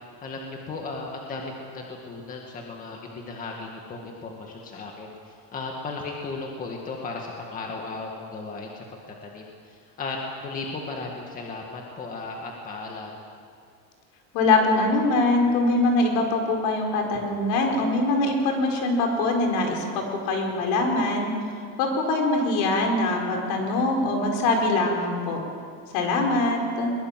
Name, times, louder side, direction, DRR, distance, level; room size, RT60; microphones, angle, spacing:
voice 1, 0.2-8.8 9.2-13.1, left 3 dB, 20° left, 0 dB, 1.9 m, -36 dB
voice 2, 14.3-21.3 21.8-25.4 25.9-26.9, left 2 dB, 60° left, 2 dB, 4.9 m, -23 dB
22.0 x 22.0 x 7.6 m, 2.2 s
cardioid pair, 175°, 39 cm